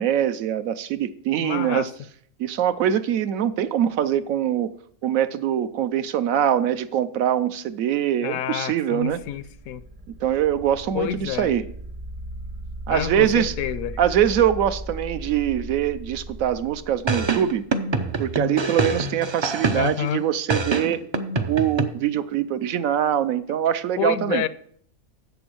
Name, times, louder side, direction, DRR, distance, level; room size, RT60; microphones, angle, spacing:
voice 1, 0.0-1.9 2.4-4.7 5.0-9.2 10.1-11.6 12.9-13.5 14.0-17.7 18.2-21.1 21.5-24.4, right 10 dB, 75° right, 1.0 m, -23 dB
voice 2, 1.4-1.9 8.2-9.8 10.9-11.5 12.9-14.0 19.7-20.3 24.0-24.5, left 11 dB, 75° left, 1.0 m, -28 dB
sound 1, 9.0-17.8, right 1 dB, 30° right, 0.7 m, -37 dB
sound 2, 17.1-20.1 20.5-21.9, right 3 dB, 50° right, 0.3 m, -25 dB
7.8 x 7.0 x 6.2 m
omnidirectional pair, 1.5 m